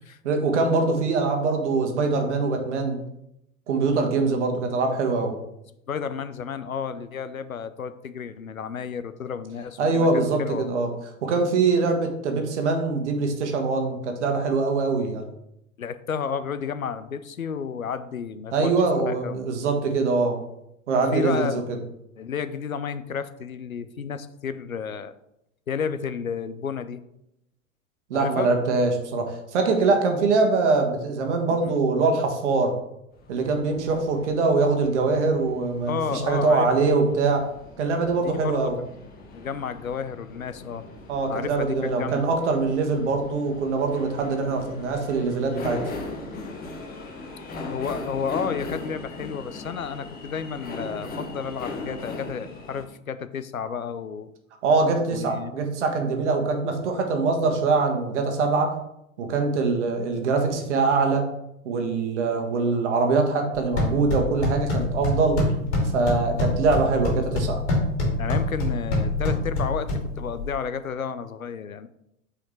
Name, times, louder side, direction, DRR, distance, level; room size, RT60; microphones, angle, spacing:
voice 1, 0.2-3.0 3.7-5.3 9.8-10.9 11.2-15.2 18.5-20.4 20.9-21.8 28.1-32.7 33.3-37.5 37.8-38.8 41.1-45.9 54.6-58.8 59.2-61.3 61.6-65.4 65.9-67.6, right 3 dB, 55° right, 3 dB, 1.5 m, -23 dB
voice 2, 5.9-10.7 15.8-18.7 19.0-19.4 21.1-21.7 22.2-25.1 25.7-27.0 28.1-28.5 31.5-31.8 35.9-36.7 36.9-37.0 38.1-38.7 39.3-40.9 41.3-42.2 47.7-54.3 55.1-55.5 68.2-71.9, left 6 dB, 85° left, 12 dB, 0.6 m, -31 dB
sound 1, 33.1-52.8, left 3 dB, 20° left, 1.3 m, -39 dB
sound 2, 63.6-70.5, left 2 dB, 55° left, 2.7 m, -26 dB
8.4 x 4.9 x 3.3 m, 0.82 s
figure-of-eight pair, 90°, 41 cm